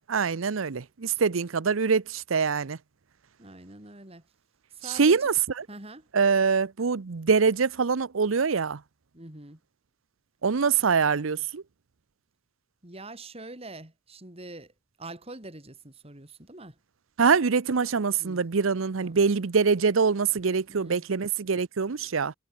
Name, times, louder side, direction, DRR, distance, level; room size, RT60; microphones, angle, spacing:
voice 1, 0.0-2.8 4.9-5.6 6.1-8.8 10.4-11.6 17.2-22.3, right 5 dB, 85° right, 0.7 m, -24 dB
voice 2, 3.4-4.2 4.7-5.3 5.7-6.1 9.1-9.6 12.8-14.7 15.0-16.8 18.2-18.4 19.0-19.2 20.7-21.1, right 2 dB, 30° right, 3.0 m, -44 dB
head